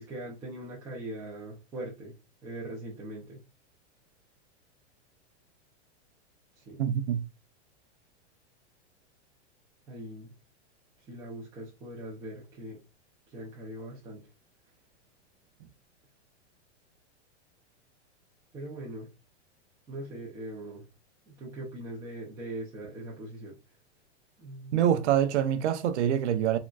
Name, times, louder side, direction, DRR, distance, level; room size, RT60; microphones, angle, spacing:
voice 1, 0.0-2.2 2.4-3.4 6.6-6.8 9.9-10.3 11.1-12.8 13.3-14.3 18.5-19.1 19.9-20.9 21.3-23.6 24.4-24.8, right 1 dB, 10° right, 0.4 m, -41 dB
voice 2, 6.8-7.2 24.7-26.6, right 10 dB, 80° right, 0.6 m, -25 dB
3.8 x 2.1 x 2.2 m
supercardioid pair, 155°, 34 cm